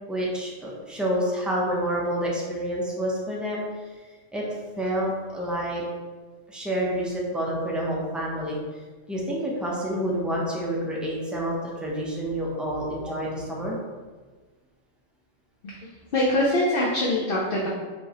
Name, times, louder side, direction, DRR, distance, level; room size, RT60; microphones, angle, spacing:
voice 1, 0.1-3.6 4.3-4.4 4.8-5.8 6.5-8.6 9.1-11.5 11.8-13.8, equal, ahead, -4 dB, 0.4 m, -28 dB
voice 2, 15.6-17.7, left 1 dB, 55° left, -5 dB, 0.8 m, -24 dB
4.5 x 3.1 x 2.9 m, 1.4 s
omnidirectional pair, 1.3 m